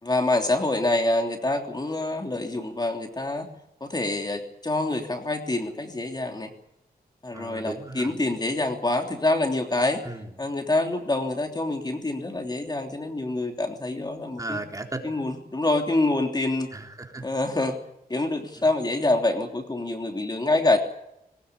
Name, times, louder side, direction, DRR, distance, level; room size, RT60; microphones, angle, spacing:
voice 1, 0.0-3.5 3.8-6.5 7.2-10.0 10.4-14.6 15.0-16.7 17.2-17.8 18.1-20.8, left 2 dB, 25° left, 3 dB, 3.2 m, -26 dB
voice 2, 7.3-8.1 10.0-10.3 14.4-15.1 16.7-17.3 18.6-18.7, right 2 dB, 20° right, 3 dB, 3.7 m, -36 dB
21.5 x 20.0 x 8.5 m, 0.82 s
wide cardioid pair, 110°, 16 cm